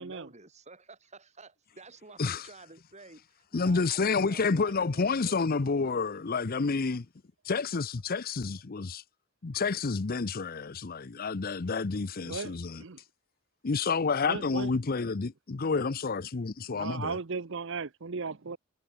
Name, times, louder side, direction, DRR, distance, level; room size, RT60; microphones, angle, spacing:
voice 1, 0.0-5.4, right 3 dB, 35° right, 5.7 m, -51 dB
voice 2, 3.5-7.1 7.4-9.0 9.4-12.8 13.6-17.2, left 4 dB, 45° left, 0.7 m, -29 dB
voice 3, 14.3-14.7 16.7-18.6, right 4 dB, 65° right, 0.8 m, -36 dB
head